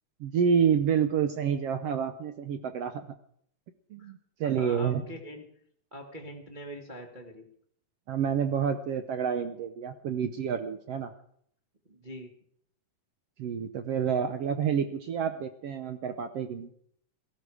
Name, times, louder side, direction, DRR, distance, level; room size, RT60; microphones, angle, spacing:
voice 1, 0.2-2.9 3.9-5.0 8.1-11.1 13.4-16.7, right 7 dB, 75° right, 9 dB, 1.4 m, -28 dB
voice 2, 4.4-5.4 5.9-7.4 11.9-12.3, equal, 50° right, 1 dB, 0.5 m, -43 dB
17.5 x 14.5 x 4.9 m, 0.65 s
omnidirectional pair, 3.7 m